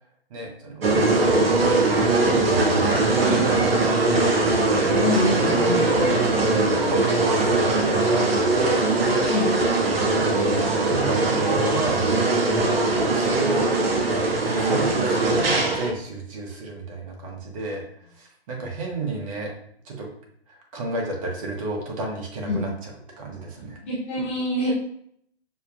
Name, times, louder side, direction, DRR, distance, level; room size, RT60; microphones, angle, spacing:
voice 1, 0.3-0.9 1.9-5.1 6.0-8.9 10.0-10.3 10.6-14.2 14.6-17.8 18.1-19.5 19.8-20.1 20.5-22.9 23.2-23.8, right 2 dB, 30° right, 0 dB, 1.0 m, -32 dB
sound 1, 0.8-15.9, right 2 dB, 60° right, 0.8 m, -21 dB
voice 2, 5.0-6.4 9.3-9.5 22.5-22.7 23.8-24.7, left 2 dB, 10° left, -10 dB, 0.4 m, -26 dB
6.5 x 2.2 x 2.4 m, 0.68 s
figure-of-eight pair, 135°, 32 cm